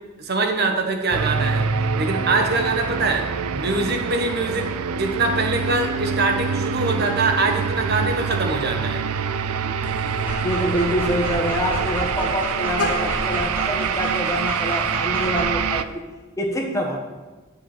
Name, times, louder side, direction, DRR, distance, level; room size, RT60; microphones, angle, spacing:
voice 1, 0.2-9.0, right 3 dB, 45° right, 4 dB, 1.2 m, -23 dB
sound 1, 1.1-15.8, right 6 dB, 80° right, 0.4 m, -25 dB
Vehicle horn car horn honking, 9.8-15.0, left 2 dB, 85° left, 1.1 m, -36 dB
Dog, 10.1-15.6, right 1 dB, 10° right, 2.9 m, -32 dB
voice 2, 10.4-16.0 16.4-17.0, equal, 15° left, 1 dB, 1.3 m, -26 dB
7.8 x 7.3 x 6.1 m, 1.2 s
head